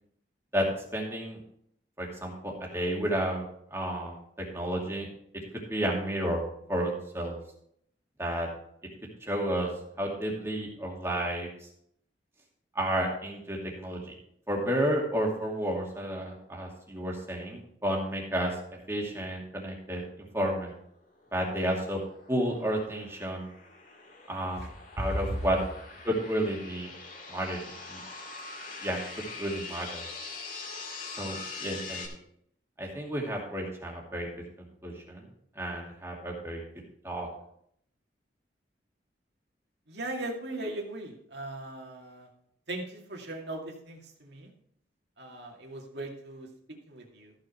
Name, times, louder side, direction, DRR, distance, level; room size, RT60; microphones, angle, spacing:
voice 1, 0.5-1.4 2.0-3.4 3.7-5.1 5.5-7.4 8.2-8.5 9.2-9.7 10.0-11.5 12.7-14.1 14.5-18.6 18.9-20.0 20.3-20.7 21.3-22.0 22.3-23.5 24.3-24.7 25.0-25.6 26.0-26.9 27.3-28.0 28.8-30.1 31.2-32.2 32.8-34.3 34.8-35.2 35.6-36.6 37.0-37.3, equal, 15° right, -1 dB, 2.5 m, -31 dB
sound 1, 21.2-32.1, left 4 dB, 50° left, 2.1 m, -43 dB
voice 2, 25.0-25.4 39.9-42.3 42.7-44.5 45.2-46.5 46.9-47.3, right 1 dB, 65° right, 0 dB, 2.2 m, -37 dB
14.0 x 6.6 x 4.4 m, 0.69 s
head